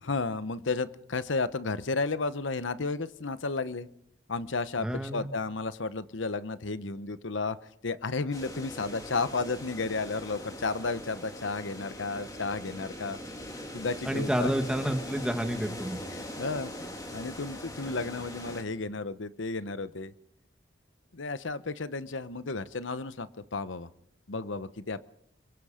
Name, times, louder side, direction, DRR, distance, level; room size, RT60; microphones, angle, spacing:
voice 1, 0.0-3.9 4.3-7.6 7.8-13.2 13.7-14.5 16.1-16.7 17.1-20.1 21.1-23.9 24.3-25.0, left 3 dB, 85° left, 14 dB, 0.9 m, -33 dB
voice 2, 4.8-5.3 14.1-16.0, equal, 5° right, 6 dB, 1.9 m, -29 dB
sound 1, 8.3-18.6, left 1 dB, 20° left, 3.2 m, -41 dB
26.5 x 23.5 x 5.1 m, 0.72 s
head